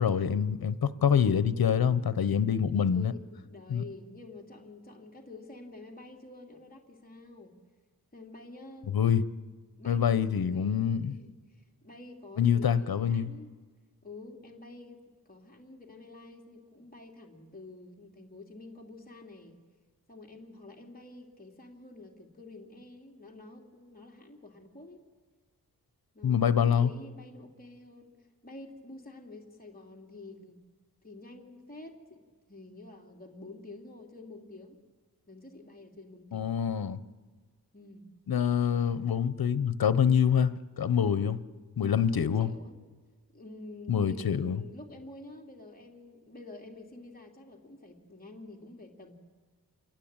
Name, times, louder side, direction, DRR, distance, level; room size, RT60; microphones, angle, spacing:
voice 1, 0.0-3.1 3.7-3.8 8.9-9.2 9.9-11.1 12.4-13.3 26.2-26.9 36.3-37.0 38.3-41.4 41.8-42.5 43.9-44.6, left 8 dB, 70° left, 1.0 m, -26 dB
voice 2, 2.7-7.5 8.1-9.0 9.8-13.6 14.0-15.0 15.3-19.6 20.1-25.0 26.1-30.6 31.0-32.2 32.5-34.8 35.3-36.5 37.7-38.1 42.1-42.8 43.3-49.1, left 2 dB, 25° left, 2.9 m, -48 dB
27.5 x 22.0 x 8.9 m
wide cardioid pair, 160°, 37 cm